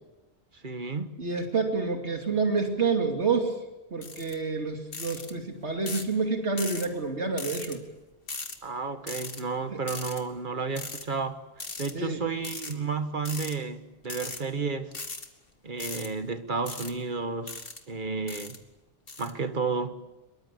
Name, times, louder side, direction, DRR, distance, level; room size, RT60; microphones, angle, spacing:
voice 1, 0.5-1.2 8.6-11.4 11.8-14.9 15.6-18.6 19.2-20.0, right 4 dB, 45° right, 1.6 m, -32 dB
voice 2, 1.2-3.6 3.9-7.8 9.7-9.8 11.9-12.2, right 4 dB, 85° right, 3.0 m, -28 dB
sound 1, 4.0-4.3 4.9-5.3 5.9-6.1 6.6-6.9 7.4-7.8 8.3-8.6 9.1-9.4 9.9-10.2 10.8-11.0 11.6-11.9 12.4-12.7 13.3-13.6 14.0-14.4 14.9-15.3 15.8-16.1 16.7-16.9 17.5-17.8 18.3-18.6 19.1-19.3, left 3 dB, 55° left, 2.2 m, -38 dB
25.0 x 22.5 x 8.5 m
omnidirectional pair, 1.1 m